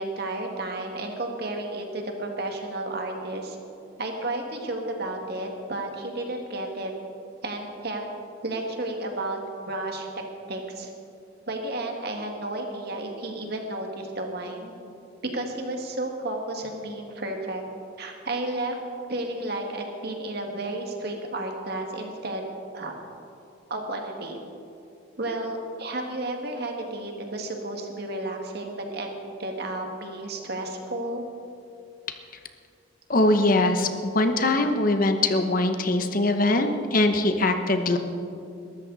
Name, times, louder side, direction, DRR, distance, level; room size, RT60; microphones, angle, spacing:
voice 1, 0.0-3.6 4.0-6.9 7.4-8.0 8.4-10.1 10.5-10.9 11.5-14.7 15.3-17.6 18.0-18.8 19.1-22.4 22.7-23.0 23.7-24.4 25.2-31.2, right 2 dB, 55° right, 2 dB, 2.0 m, -32 dB
voice 2, 33.1-33.9 34.1-38.0, left 2 dB, 45° left, 7 dB, 0.9 m, -22 dB
21.5 x 13.5 x 4.1 m, 2.6 s
head